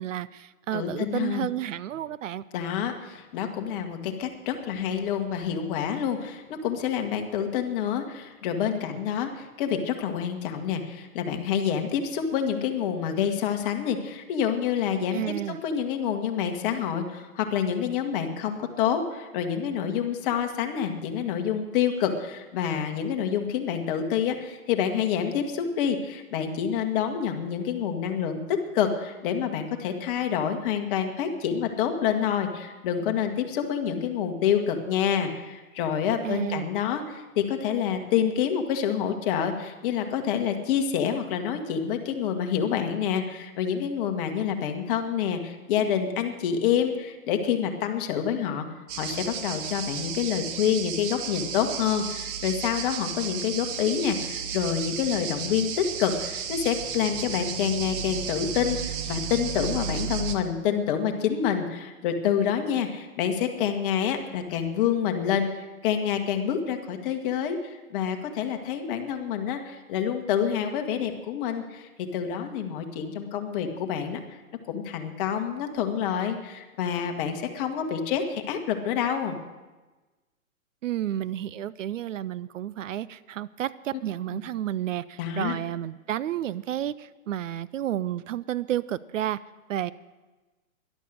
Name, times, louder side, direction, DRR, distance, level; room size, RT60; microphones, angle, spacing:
voice 1, 0.0-2.4 15.1-15.6 36.2-36.7 80.8-89.4 89.7-89.9, right 12 dB, 65° right, 17 dB, 0.6 m, -31 dB
voice 2, 0.7-1.5 2.5-15.3 15.6-48.6 49.0-74.2 74.7-79.4 85.2-85.5, left 8 dB, 40° left, 5 dB, 1.6 m, -27 dB
sound 1, 48.9-60.3, right 8 dB, 35° right, 1.2 m, -33 dB
12.5 x 11.5 x 6.5 m, 1.2 s
hypercardioid pair, 130°, 42 cm